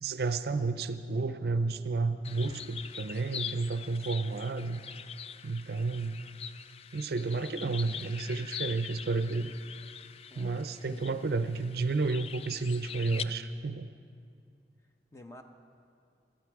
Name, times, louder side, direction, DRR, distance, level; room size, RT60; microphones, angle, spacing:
voice 1, 0.0-4.8 5.4-6.2 6.9-9.5 10.4-13.9, right 3 dB, 60° right, 12 dB, 0.5 m, -31 dB
sound 1, 2.2-13.2, left 8 dB, 35° left, 0.3 m, -43 dB
voice 2, 10.3-11.2 15.1-15.4, left 1 dB, 15° left, 4 dB, 0.8 m, -51 dB
16.5 x 13.5 x 4.8 m, 2.4 s
head